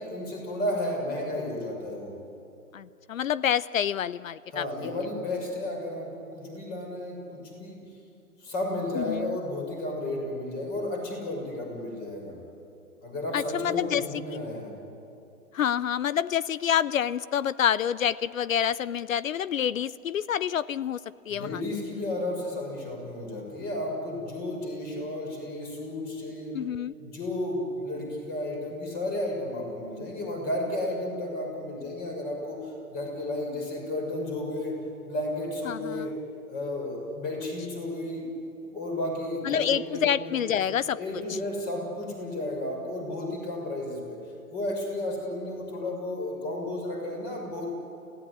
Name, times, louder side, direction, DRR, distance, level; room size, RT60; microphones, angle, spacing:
voice 1, 0.0-2.1 4.5-7.8 8.4-12.3 13.0-14.7 21.3-26.6 27.0-34.8 35.1-36.1 36.5-38.2 38.7-40.7 40.9-44.2 44.5-47.7, left 1 dB, 20° left, 2 dB, 6.1 m, -33 dB
voice 2, 2.7-4.7 9.0-9.4 13.3-14.2 15.5-21.0 21.3-21.5 26.5-26.9 35.7-36.1 39.4-41.0, left 9 dB, 60° left, 18 dB, 0.6 m, -27 dB
29.5 x 16.0 x 9.8 m, 2.7 s
hypercardioid pair, 150°, 45 cm